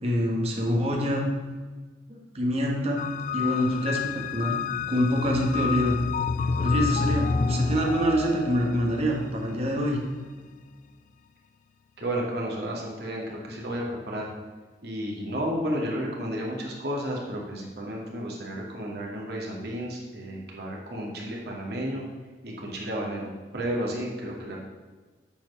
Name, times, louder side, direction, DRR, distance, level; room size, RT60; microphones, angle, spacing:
voice 1, 0.0-1.2 2.1-3.0 3.3-4.6 4.9-6.0 6.6-10.0, equal, 35° right, -1 dB, 1.4 m, -25 dB
sound 1, 3.0-10.3, left 5 dB, 45° left, 0.4 m, -29 dB
voice 2, 12.0-14.3 14.8-22.0 22.4-24.6, equal, 65° right, -2 dB, 2.2 m, -32 dB
8.4 x 4.5 x 6.9 m, 1.4 s
head